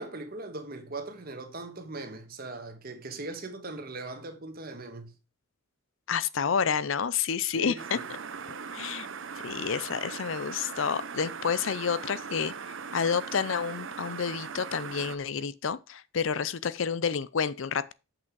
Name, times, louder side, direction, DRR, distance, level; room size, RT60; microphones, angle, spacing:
voice 1, 0.0-5.1 7.5-8.1, right 2 dB, 45° right, 1.5 m, -39 dB
voice 2, 6.1-8.0 8.5-9.1 9.4-12.5 12.9-17.9, left 6 dB, 65° left, 0.5 m, -29 dB
sound 1, 7.8-15.2, right 6 dB, 60° right, 0.7 m, -40 dB
7.8 x 6.0 x 4.7 m
head